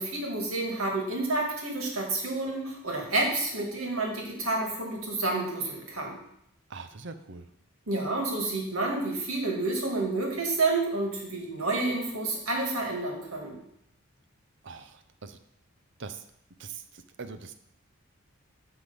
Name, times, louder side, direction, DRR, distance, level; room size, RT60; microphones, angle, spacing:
voice 1, 0.0-6.2 7.9-13.6, right 2 dB, 80° right, 0 dB, 2.2 m, -29 dB
voice 2, 6.7-7.5 14.6-15.4 16.0-16.2 16.6-17.5, right 4 dB, 55° right, 10 dB, 0.6 m, -42 dB
9.6 x 3.6 x 6.9 m, 0.75 s
head